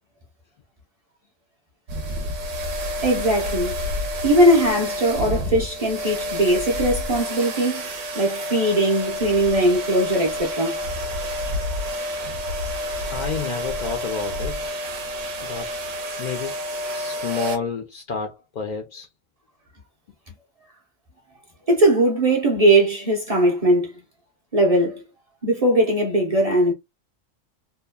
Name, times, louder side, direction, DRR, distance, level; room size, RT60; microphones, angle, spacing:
sound 1, 1.9-17.6, equal, 75° right, 1.0 m, -29 dB
voice 1, 3.0-3.7 4.2-7.9 8.1-10.8 21.7-23.9 24.5-25.0 25.4-26.7, right 1 dB, 35° right, 0.7 m, -19 dB
voice 2, 13.1-14.7 15.4-15.7 16.2-16.5 16.9-19.1, left 5 dB, 70° left, 0.4 m, -30 dB
2.9 x 2.2 x 2.2 m
omnidirectional pair, 1.3 m